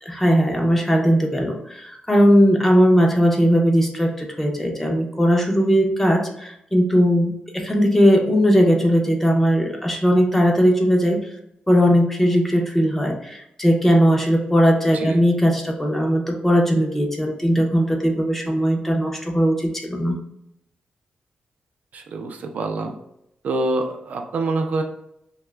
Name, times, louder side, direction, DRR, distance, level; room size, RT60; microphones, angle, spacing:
voice 1, 0.0-11.3 11.7-20.2, equal, 10° left, 1 dB, 0.5 m, -18 dB
voice 2, 21.9-22.9 23.4-24.8, right 2 dB, 60° right, 4 dB, 0.4 m, -26 dB
2.8 x 2.3 x 3.2 m, 0.78 s
wide cardioid pair, 145°, 3 cm